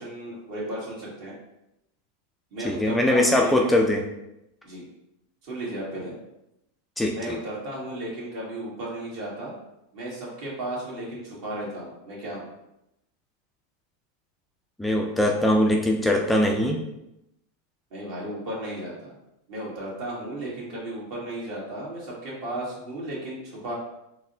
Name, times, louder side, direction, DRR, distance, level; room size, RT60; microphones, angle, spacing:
voice 1, 0.0-1.4 2.5-3.7 4.6-4.8 5.4-6.1 7.1-9.6 9.9-12.5 17.9-19.1 19.5-23.7, right 1 dB, 55° right, -5 dB, 1.5 m, -34 dB
voice 2, 2.7-4.0 7.0-7.4 14.8-16.8, left 1 dB, 5° left, 1 dB, 0.3 m, -21 dB
3.9 x 2.1 x 2.7 m, 0.85 s
hypercardioid pair, 105°, 0 cm